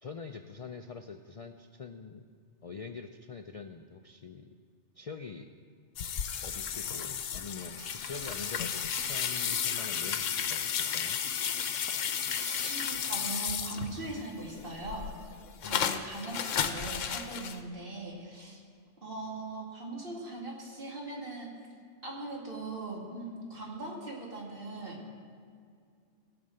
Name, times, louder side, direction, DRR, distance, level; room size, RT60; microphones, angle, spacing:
voice 1, 0.0-2.3 2.6-4.5 5.0-5.5 6.4-11.2 15.6-15.9, left 5 dB, 65° left, 6 dB, 0.3 m, -44 dB
sound 1, 6.0-14.2 14.6-17.6, left 8 dB, 90° left, 1.1 m, -33 dB
Insect, 7.8-9.5 10.6-11.4 11.8-12.9, right 1 dB, 20° right, 0.8 m, -48 dB
voice 2, 12.5-15.1 15.6-18.6 19.0-21.5 22.0-25.0, right 2 dB, 45° right, -2 dB, 2.6 m, -40 dB
16.5 x 5.9 x 7.6 m, 2.3 s
omnidirectional pair, 1.2 m